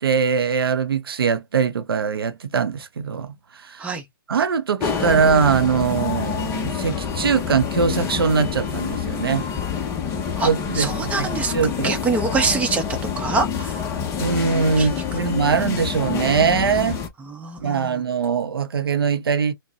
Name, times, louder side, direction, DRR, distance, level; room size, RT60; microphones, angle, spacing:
voice 1, 0.0-3.3 3.6-3.8 4.3-9.4 10.4-11.3 11.5-12.0 14.2-17.0 17.6-19.5, right 6 dB, 80° right, 0.6 m, -22 dB
sound 1, 4.8-17.1, left 7 dB, 20° left, 0.8 m, -27 dB
voice 2, 10.7-11.5 11.8-12.8 13.2-13.8 14.8-14.9 17.2-18.0, right 4 dB, 10° right, 0.8 m, -24 dB
4.0 x 2.2 x 2.7 m
hypercardioid pair, 130°, 12 cm